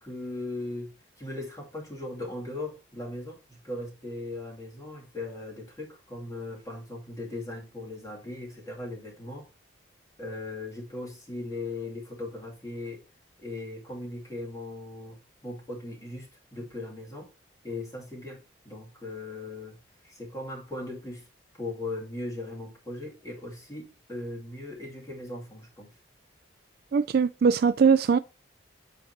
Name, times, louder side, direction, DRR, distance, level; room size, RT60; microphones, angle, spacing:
voice 1, 0.0-9.5 10.2-13.0 13.4-17.3 17.6-19.8 20.0-21.3 21.6-25.9, left 2 dB, 15° left, 2.5 m, -38 dB
voice 2, 26.9-28.2, right 6 dB, 55° right, 0.3 m, -21 dB
7.8 x 5.1 x 4.5 m
head